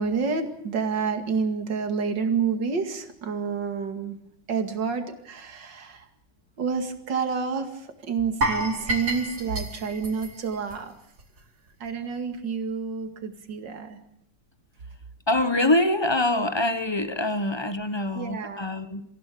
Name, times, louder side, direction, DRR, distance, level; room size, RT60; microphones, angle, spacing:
voice 1, 0.0-4.2 4.5-6.1 6.6-10.9 11.8-14.0 18.1-18.6, right 5 dB, 60° right, 2.8 m, -29 dB
sound 1, 8.4-11.4 11.7-11.9 12.3-12.4, right 1 dB, 40° right, 2.9 m, -30 dB
voice 2, 15.3-19.0, left 1 dB, 20° left, 0.8 m, -24 dB
26.0 x 16.0 x 8.5 m
omnidirectional pair, 2.3 m